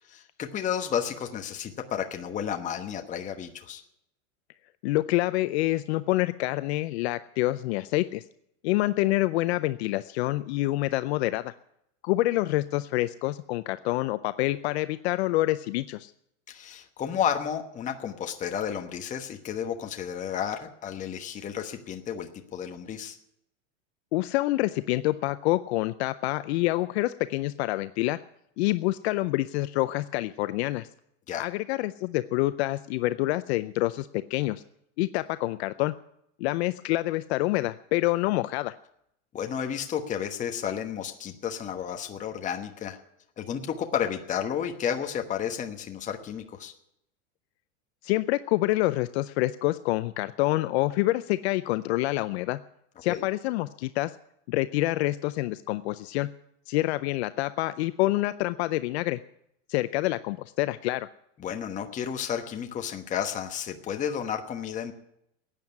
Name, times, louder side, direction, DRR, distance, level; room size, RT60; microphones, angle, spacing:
voice 1, 0.1-3.8 16.5-23.2 31.3-31.4 39.3-43.0 43.4-46.7 53.1-53.3 61.4-64.9, left 8 dB, 20° left, 5 dB, 1.2 m, -32 dB
voice 2, 4.8-8.2 8.6-11.5 12.0-16.1 24.1-28.2 28.6-30.9 31.4-34.6 35.0-36.0 36.4-38.7 48.0-52.6 53.0-54.1 54.5-56.3 56.7-59.2 59.7-61.1, left 18 dB, 60° left, 13 dB, 0.6 m, -27 dB
15.5 x 9.2 x 9.8 m, 0.78 s
supercardioid pair, 145°, 37 cm